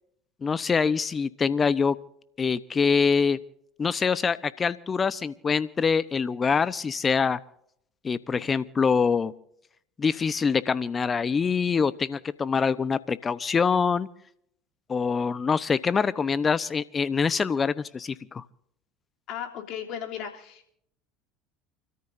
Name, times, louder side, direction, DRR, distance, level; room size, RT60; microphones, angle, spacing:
voice 1, 0.4-2.0 2.4-3.4 3.8-7.4 8.0-9.3 10.0-14.1 14.9-18.4, left 5 dB, 30° left, 16 dB, 0.9 m, -25 dB
voice 2, 19.3-20.7, left 9 dB, 60° left, 2 dB, 3.1 m, -36 dB
29.5 x 13.5 x 2.7 m, 0.70 s
hypercardioid pair, 80°, 0 cm